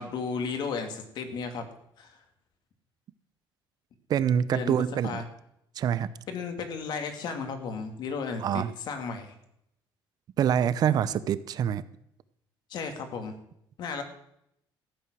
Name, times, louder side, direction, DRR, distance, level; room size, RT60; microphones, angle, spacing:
voice 1, 0.0-1.7 2.0-2.1 4.5-4.7 5.0-5.3 6.3-9.3 12.7-13.4 13.8-14.0, left 5 dB, 60° left, 6 dB, 2.2 m, -34 dB
voice 2, 4.1-5.2 5.8-6.1 8.4-8.7 10.4-11.8, right 9 dB, 50° right, 16 dB, 0.7 m, -25 dB
14.5 x 9.0 x 6.2 m, 0.76 s
cardioid pair, 140°, 8 cm